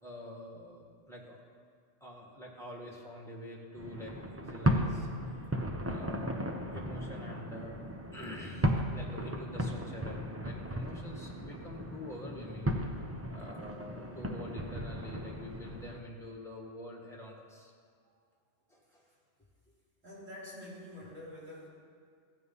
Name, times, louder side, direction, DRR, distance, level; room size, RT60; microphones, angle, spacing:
voice 1, 0.0-1.4 2.0-7.8 8.1-12.8 13.3-17.7 18.7-19.0, left 1 dB, ahead, -2 dB, 1.7 m, -46 dB
sound 1, 3.8-16.0, equal, 15° right, 0.5 m, -35 dB
voice 2, 20.0-21.7, left 1 dB, 75° right, -7 dB, 3.7 m, -47 dB
14.0 x 8.4 x 5.5 m, 2.2 s
omnidirectional pair, 1.3 m